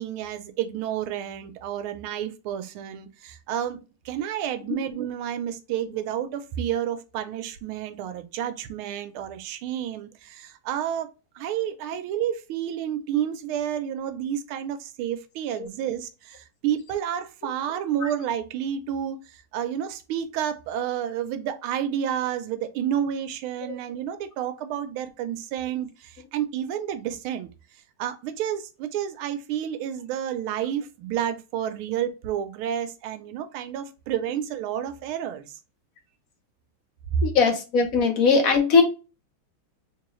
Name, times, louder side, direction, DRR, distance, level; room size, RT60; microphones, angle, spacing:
voice 1, 0.0-11.1 11.3-27.5 28.0-35.5, right 10 dB, 90° right, 1.5 m, -30 dB
voice 2, 37.2-38.8, left 5 dB, 55° left, 1.0 m, -20 dB
3.8 x 2.9 x 3.0 m
omnidirectional pair, 2.3 m